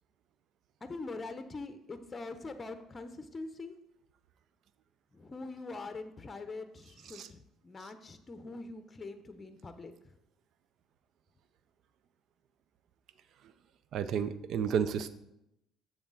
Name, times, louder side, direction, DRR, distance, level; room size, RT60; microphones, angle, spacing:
voice 1, 0.8-3.7 5.1-9.9, left 3 dB, 30° left, 9 dB, 0.8 m, -43 dB
voice 2, 13.9-15.1, right 7 dB, 65° right, 14 dB, 0.6 m, -32 dB
7.5 x 7.0 x 3.8 m, 0.83 s
hypercardioid pair, 60°, 0 cm